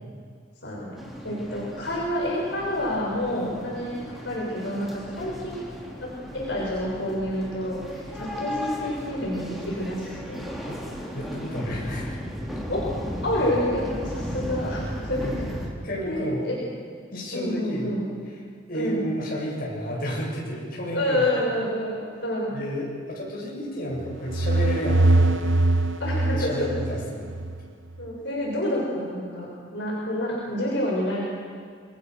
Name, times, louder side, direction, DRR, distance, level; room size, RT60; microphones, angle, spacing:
voice 1, 0.6-0.9 1.2-5.6 6.0-6.1 6.3-10.5 12.7-12.9 13.2-15.4 16.1-16.6 17.3-18.0 18.7-19.0 20.9-22.5 26.0-26.7 28.0-31.2, left 1 dB, 65° left, -4 dB, 6.5 m, -28 dB
sound 1, 1.0-15.7, equal, ahead, 3.6 m, -35 dB
voice 2, 11.1-12.2 15.1-15.4 15.8-16.5 17.1-17.9 18.7-21.2 22.5-25.6 26.3-27.3, equal, 50° left, -4 dB, 7.7 m, -32 dB
sound 2, 24.0-27.6, right 2 dB, 85° right, 1.0 m, -22 dB
28.0 x 22.0 x 6.4 m, 2.1 s
head